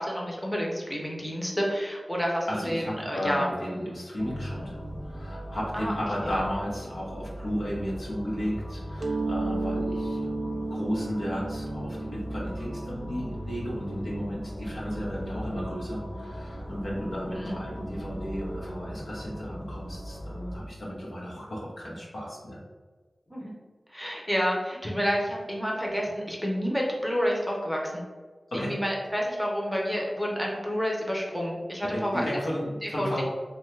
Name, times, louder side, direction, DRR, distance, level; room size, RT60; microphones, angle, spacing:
voice 1, 0.0-3.5 5.7-5.9 17.4-17.6 23.3-23.5 23.9-28.0 28.5-32.4 32.8-33.2, equal, 5° left, -2 dB, 0.7 m, -29 dB
voice 2, 2.5-4.8 5.0-10.3 10.7-22.6 28.5-28.8 31.8-33.2, equal, 85° left, -5 dB, 0.8 m, -34 dB
sound 1, 4.2-20.6, equal, 45° left, 0.8 m, -39 dB
Mallet percussion, 9.0-14.5, right 2 dB, 65° right, 0.3 m, -34 dB
2.8 x 2.3 x 3.2 m, 1.4 s
cardioid pair, 50°, 0 cm